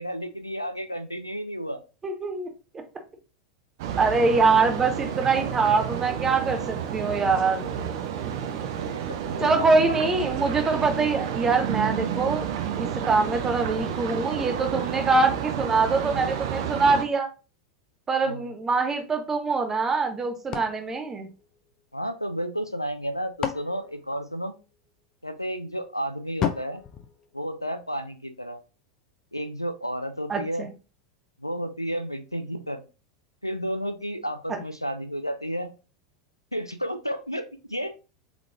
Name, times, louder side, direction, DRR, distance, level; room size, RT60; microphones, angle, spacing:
voice 1, 0.0-1.8 8.8-10.3 18.2-18.5 21.9-24.5 25.2-26.8 27.3-28.6 29.3-30.7 31.4-32.8 33.4-35.7 36.5-37.9, equal, 90° left, 9 dB, 0.4 m, -32 dB
voice 2, 2.0-2.5 4.0-7.7 9.4-12.5 12.8-17.3 18.1-21.3 30.3-30.7, right 4 dB, 20° right, 6 dB, 0.7 m, -24 dB
sound 1, 3.8-17.0, right 9 dB, 55° right, 0.6 m, -30 dB
sound 2, 20.5-22.1 22.9-24.9 26.4-28.0, left 8 dB, 30° left, 0.5 m, -35 dB
3.6 x 3.5 x 2.3 m, 0.32 s
figure-of-eight pair, 85°, 2 cm